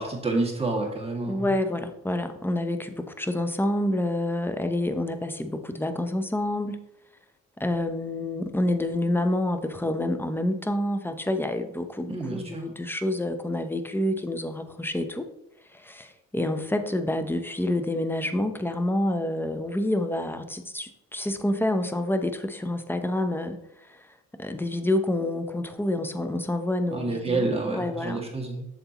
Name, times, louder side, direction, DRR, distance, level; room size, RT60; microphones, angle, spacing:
voice 1, 0.0-1.5 12.1-12.7 26.9-28.7, right 2 dB, 20° right, 0 dB, 2.2 m, -29 dB
voice 2, 1.2-6.8 7.6-15.3 15.7-23.6 23.9-24.0 24.4-28.3, left 1 dB, 5° left, 8 dB, 0.7 m, -28 dB
7.8 x 6.8 x 3.0 m, 0.84 s
cardioid pair, 90°, 30 cm